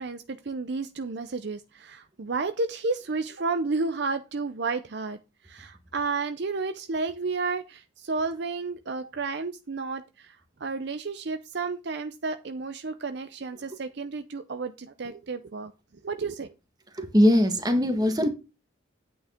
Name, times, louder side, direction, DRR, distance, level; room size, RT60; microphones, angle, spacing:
voice 1, 0.0-5.2 5.4-15.7 16.0-16.5, right 3 dB, 55° right, 0.5 m, -32 dB
voice 2, 16.9-18.3, equal, 20° right, 1.5 m, -21 dB
9.2 x 8.4 x 3.6 m
head